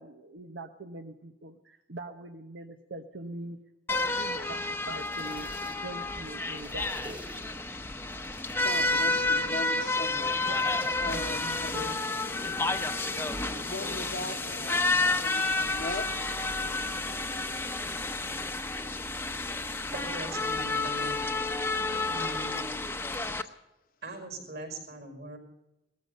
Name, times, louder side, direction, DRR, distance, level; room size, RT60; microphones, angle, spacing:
voice 1, 0.0-3.6 3.9-5.5 5.8-7.2 7.5-7.6 10.4-12.8, right 2 dB, 80° right, 5 dB, 1.0 m, -43 dB
sound 1, 3.9-23.4, left 3 dB, 10° left, 0.8 m, -30 dB
sound 2, 4.8-6.0 6.3-7.7 8.1-9.3 10.1-11.2 11.7-12.2, equal, 5° right, 1.2 m, -48 dB
voice 2, 8.6-10.5 11.0-11.8 13.7-16.1, left 2 dB, 50° left, 7 dB, 1.1 m, -39 dB
sound 3, 10.8-17.2, left 6 dB, 80° left, 0.7 m, -49 dB
voice 3, 19.9-21.2 22.0-22.7 24.0-25.4, right 2 dB, 60° right, 2 dB, 5.5 m, -41 dB
19.0 x 14.0 x 5.4 m, 0.95 s
head